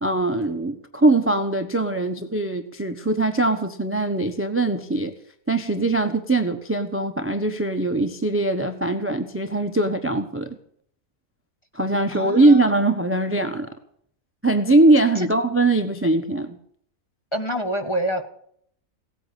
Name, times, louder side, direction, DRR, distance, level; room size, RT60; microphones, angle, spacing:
voice 1, 0.0-5.1 5.5-10.6 11.7-13.7 14.4-16.6, right 2 dB, 10° right, 8 dB, 0.8 m, -21 dB
voice 2, 12.1-12.6 15.1-15.3 17.3-18.3, right 1 dB, 20° left, 6 dB, 1.2 m, -27 dB
17.5 x 8.8 x 8.4 m, 0.65 s
omnidirectional pair, 1.6 m